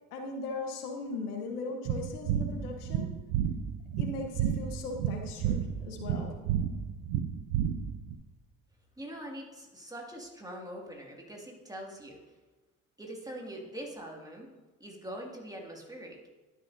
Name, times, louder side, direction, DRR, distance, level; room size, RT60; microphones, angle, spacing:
voice 1, 0.1-3.1 4.0-6.4, left 3 dB, 90° left, 3 dB, 1.0 m, -38 dB
sound 1, 1.9-8.1, right 9 dB, 70° right, 0.7 m, -31 dB
voice 2, 9.0-12.3 13.0-14.5 14.8-16.2, right 1 dB, 10° right, -1 dB, 2.1 m, -43 dB
11.5 x 6.4 x 2.6 m, 1.2 s
hypercardioid pair, 55°, 44 cm